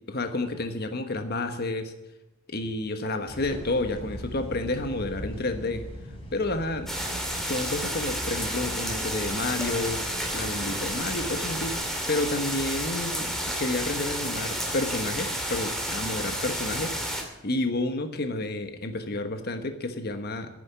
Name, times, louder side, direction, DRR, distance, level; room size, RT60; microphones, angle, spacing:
voice 1, 0.1-1.9 2.5-5.9 6.3-6.9 7.4-10.0 10.3-11.8 12.1-17.0 17.4-20.5, left 2 dB, 50° left, 7 dB, 1.3 m, -30 dB
sound 1, 3.3-11.7, equal, 25° left, 4.1 m, -41 dB
sound 2, 6.9-17.2, equal, ahead, 2.6 m, -31 dB
11.0 x 10.0 x 9.5 m, 0.99 s
head